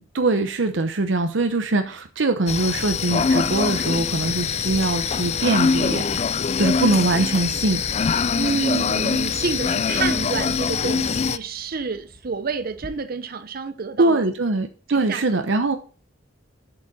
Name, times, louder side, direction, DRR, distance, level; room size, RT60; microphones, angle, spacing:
voice 1, 0.1-6.3 6.6-7.8 14.0-15.8, right 2 dB, 85° right, 0.8 m, -22 dB
sound 1, 2.5-11.4, left 5 dB, 35° left, 0.4 m, -23 dB
Bird vocalization bird call bird song, 7.1-12.9, equal, 25° right, 2.3 m, -51 dB
voice 2, 8.3-14.2 14.9-15.4, right 4 dB, 55° right, 0.7 m, -28 dB
8.0 x 7.8 x 4.1 m
head